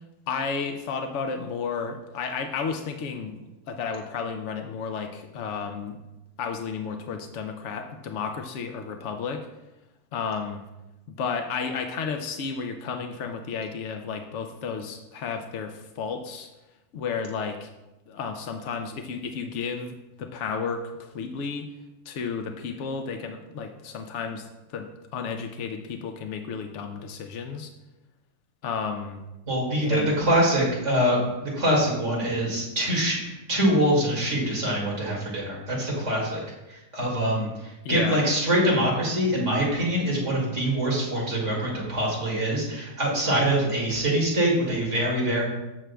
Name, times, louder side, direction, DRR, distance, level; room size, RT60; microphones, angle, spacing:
voice 1, 0.3-3.4 3.7-6.0 6.4-9.5 10.1-10.6 11.1-16.5 16.9-17.7 18.1-21.7 22.1-27.7 28.6-29.2 29.8-30.2 37.8-38.2, left 5 dB, 75° left, 5 dB, 0.6 m, -32 dB
voice 2, 29.5-36.4 36.7-45.4, right 1 dB, 40° right, -4 dB, 2.4 m, -24 dB
15.0 x 6.2 x 2.3 m, 1.0 s
omnidirectional pair, 1.9 m